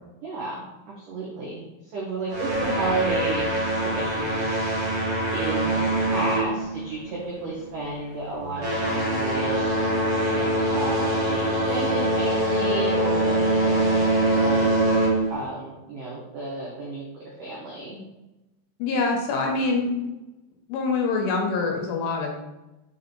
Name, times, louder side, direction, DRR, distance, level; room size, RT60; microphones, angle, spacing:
voice 1, 0.2-0.6 1.0-1.6 1.9-3.4 3.7-4.5 5.3-9.6 10.4-14.7 15.3-18.1, right 2 dB, 85° right, -5 dB, 1.8 m, -32 dB
sound 1, 2.3-7.2 7.5-7.8 8.4-15.4, right 1 dB, 70° right, 1.6 m, -24 dB
voice 2, 18.8-19.9 20.7-22.4, left 3 dB, 85° left, 1 dB, 3.2 m, -25 dB
7.5 x 3.7 x 3.9 m, 0.99 s
omnidirectional pair, 5.7 m